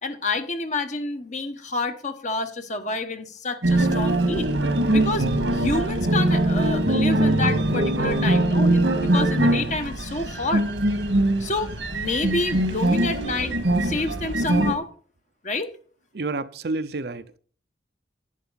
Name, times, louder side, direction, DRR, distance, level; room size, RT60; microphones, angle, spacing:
voice 1, 0.0-4.5 4.9-5.3 5.5-10.6 11.4-14.9 15.4-15.7, left 3 dB, 40° left, 1.1 m, -28 dB
sound 1, 3.6-14.7, right 1 dB, 85° right, 1.8 m, -22 dB
voice 2, 16.1-17.4, right 3 dB, 60° right, 0.7 m, -29 dB
11.0 x 10.5 x 4.0 m
head